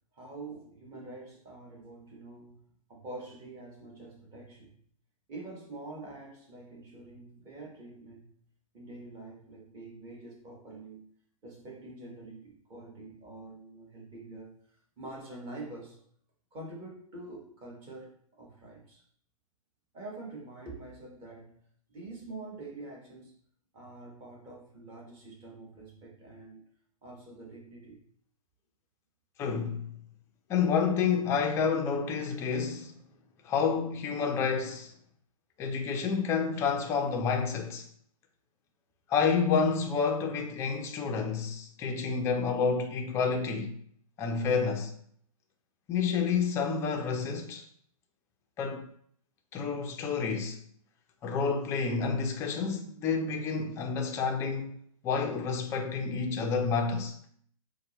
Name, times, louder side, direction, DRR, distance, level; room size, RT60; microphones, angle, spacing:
voice 1, 0.1-2.6 2.9-4.8 5.3-8.3 8.7-11.0 11.4-14.5 15.0-16.0 16.5-19.0 19.9-21.6 21.9-23.3 23.7-26.6 27.0-28.0, right 2 dB, 25° right, 1.1 m, -46 dB
voice 2, 29.4-29.9 30.5-32.9 33.4-34.9 35.6-37.9 39.1-43.8 44.2-44.9 45.9-47.6 48.6-48.9 49.5-50.6 51.2-54.7 55.0-57.1, left 5 dB, 15° left, 0.3 m, -29 dB
4.3 x 2.0 x 2.9 m
hypercardioid pair, 130°, 19 cm